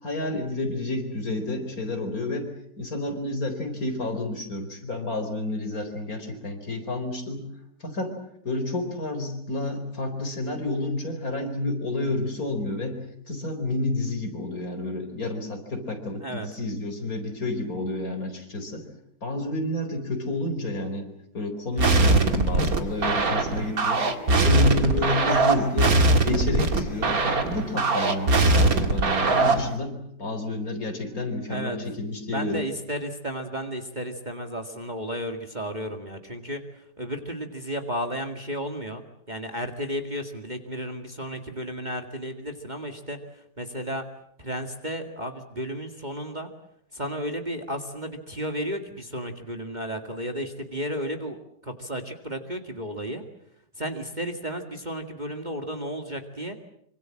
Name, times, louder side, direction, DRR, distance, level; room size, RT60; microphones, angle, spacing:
voice 1, 0.0-2.5 2.8-7.4 7.8-8.1 8.4-13.0 13.3-18.8 19.2-21.1 21.3-24.1 24.4-32.6, left 2 dB, 50° left, 5 dB, 4.8 m, -30 dB
sound 1, 21.7-28.9, right 1 dB, 5° left, 6.8 m, -44 dB
sound 2, 21.8-29.7, right 2 dB, 50° right, 2.5 m, -21 dB
voice 2, 32.3-44.1 44.4-46.5 46.9-51.4 51.6-53.2 53.8-56.6, equal, 25° right, 5 dB, 2.1 m, -33 dB
25.5 x 25.5 x 7.6 m, 0.72 s
omnidirectional pair, 1.9 m